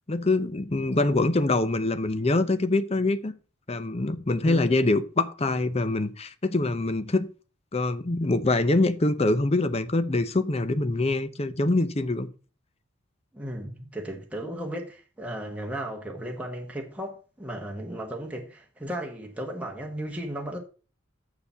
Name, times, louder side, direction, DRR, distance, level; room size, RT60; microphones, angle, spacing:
voice 1, 0.1-3.3 3.7-7.3 7.7-12.3, left 2 dB, 30° left, 0.7 m, -24 dB
voice 2, 4.4-4.8 13.3-20.6, right 1 dB, 5° right, 1.2 m, -35 dB
7.0 x 6.8 x 5.5 m
head